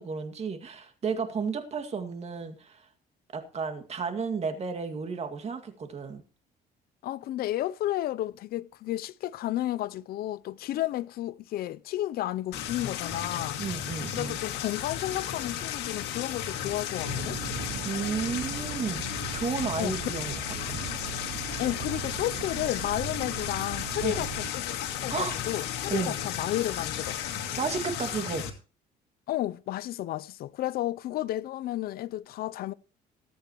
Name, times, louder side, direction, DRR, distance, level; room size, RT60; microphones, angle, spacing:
voice 1, 0.0-2.9 3.3-6.2 13.6-14.4 17.8-20.3 20.7-20.8 24.0-24.2 25.1-25.4 25.9-26.2 27.6-28.5, right 5 dB, 40° right, 2.1 m, -33 dB
voice 2, 7.0-13.6 14.1-17.4 19.8-20.1 21.6-27.2 29.3-32.7, left 14 dB, 65° left, 0.5 m, -32 dB
sound 1, 12.5-28.5, left 9 dB, 80° left, 2.0 m, -34 dB
sound 2, 17.0-24.5, right 17 dB, 75° right, 0.5 m, -40 dB
20.0 x 8.6 x 3.0 m
cardioid pair, 110°, 17 cm